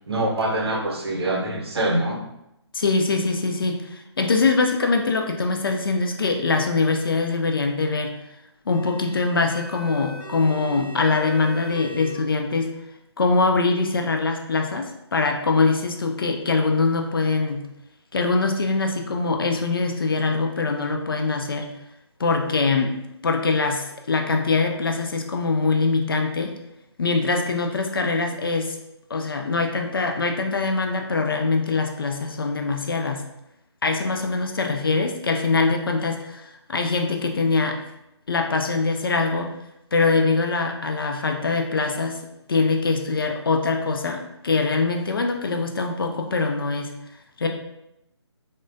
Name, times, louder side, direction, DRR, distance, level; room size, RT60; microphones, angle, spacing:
voice 1, 0.1-2.2, right 1 dB, 60° right, 0 dB, 0.7 m, -24 dB
voice 2, 2.7-8.2 8.7-12.7 13.2-17.7 18.1-21.7 22.2-22.9 23.2-26.5 27.0-28.8 29.1-33.2 33.8-37.8 38.3-39.5 39.9-42.2 42.5-46.9 47.4-47.5, left 3 dB, 50° left, 3 dB, 0.4 m, -23 dB
sound 1, 8.7-12.1, right 2 dB, 5° left, 1.0 m, -39 dB
3.5 x 2.2 x 2.5 m, 0.85 s
figure-of-eight pair, 160°, 15 cm